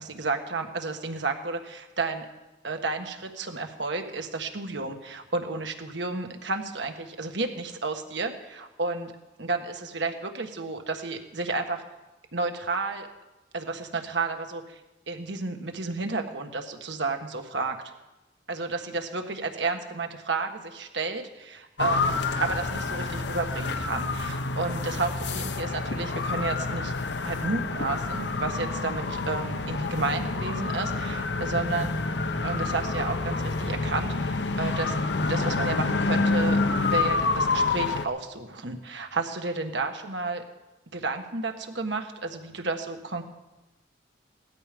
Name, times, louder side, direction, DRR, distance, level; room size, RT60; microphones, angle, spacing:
voice 1, 0.0-2.3 2.6-9.1 9.4-11.8 12.3-13.1 13.5-14.8 15.1-17.8 18.5-26.9 27.2-31.9 32.4-34.9 35.2-40.4 40.9-43.2, right 3 dB, 75° right, 5 dB, 1.6 m, -31 dB
sound 1, 21.8-38.1, left 3 dB, 70° left, 0.9 m, -28 dB
18.0 x 13.0 x 5.3 m, 1.0 s
head